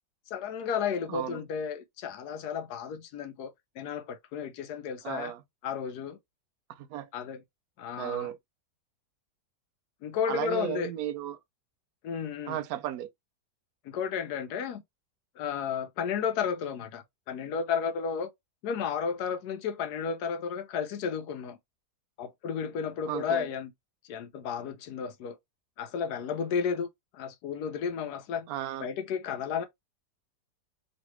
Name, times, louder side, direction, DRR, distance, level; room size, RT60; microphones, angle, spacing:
voice 1, 0.3-5.3 5.6-6.2 7.1-7.4 7.8-8.3 10.0-10.9 12.0-12.6 13.8-14.8 15.4-18.3 18.6-21.6 22.2-23.7 24.1-25.4 25.8-26.9 27.1-28.5 28.8-29.7, left 7 dB, 75° left, 1.2 m, -33 dB
voice 2, 1.1-1.4 5.0-5.4 6.9-7.1 8.0-8.4 10.3-11.4 12.5-13.1 23.1-23.5 28.5-28.9, right 12 dB, 70° right, 1.0 m, -34 dB
3.2 x 2.6 x 3.0 m
omnidirectional pair, 1.8 m